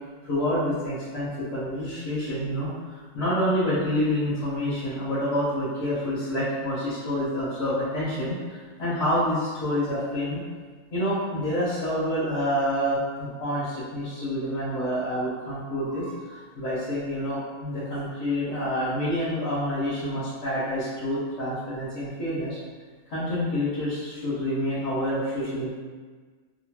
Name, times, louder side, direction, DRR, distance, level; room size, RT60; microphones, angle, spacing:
voice 1, 0.2-10.4 10.9-22.6 23.1-25.8, equal, 60° left, -11 dB, 1.3 m, -28 dB
3.0 x 2.7 x 2.8 m, 1.5 s
omnidirectional pair, 1.6 m